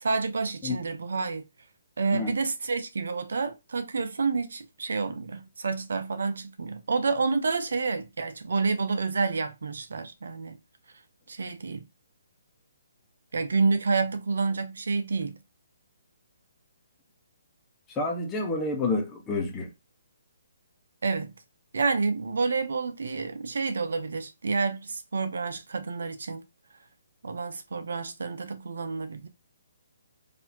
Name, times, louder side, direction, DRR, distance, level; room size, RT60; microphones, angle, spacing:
voice 1, 0.0-1.4 2.0-10.6 11.3-11.9 13.3-15.4 21.0-21.3 21.7-26.4 27.2-29.3, right 4 dB, 75° right, 0.7 m, -29 dB
voice 2, 18.0-19.7, left 3 dB, 15° left, 1.0 m, -28 dB
4.0 x 2.8 x 2.8 m
hypercardioid pair, 145°, 0 cm